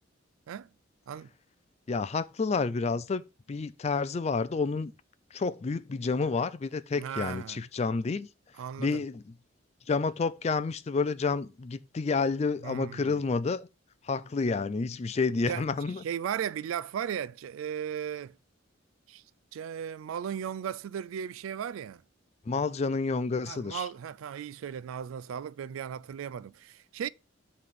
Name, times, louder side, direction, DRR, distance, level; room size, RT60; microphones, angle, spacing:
voice 1, 1.9-3.2 3.5-4.9 5.3-8.3 8.8-9.3 9.9-13.7 14.0-16.0 22.5-23.9, left 4 dB, 35° left, 0.3 m, -29 dB
voice 2, 7.0-7.6 8.6-9.0 12.6-13.2 15.5-15.6 16.0-18.3 19.1-19.2 19.5-22.0 23.5-27.1, right 8 dB, 85° right, 0.3 m, -36 dB
7.8 x 3.3 x 5.2 m
head